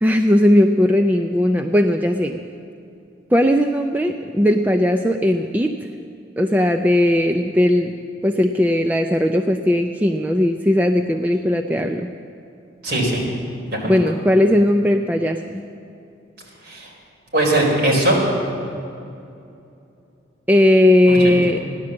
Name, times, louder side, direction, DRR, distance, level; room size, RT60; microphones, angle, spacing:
voice 1, 0.0-2.5 3.3-5.7 6.4-7.9 8.2-12.1 13.9-15.6 20.5-21.6, left 1 dB, 10° right, 4 dB, 0.4 m, -17 dB
voice 2, 12.8-13.2 13.7-13.9 16.6-16.9 17.3-18.2 21.1-21.6, right 1 dB, 50° right, -3 dB, 4.4 m, -20 dB
16.0 x 10.5 x 7.5 m, 2.6 s
head